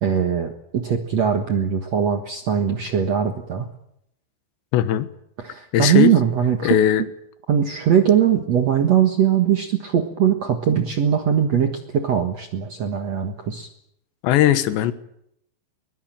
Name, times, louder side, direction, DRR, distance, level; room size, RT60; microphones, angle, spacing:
voice 1, 0.0-3.7 5.4-6.8 7.5-13.7, right 8 dB, 60° right, 1.9 m, -20 dB
voice 2, 4.7-5.1 5.7-6.2 6.6-7.1 14.2-14.9, left 11 dB, 85° left, 3.5 m, -18 dB
22.0 x 21.5 x 9.0 m
omnidirectional pair, 5.1 m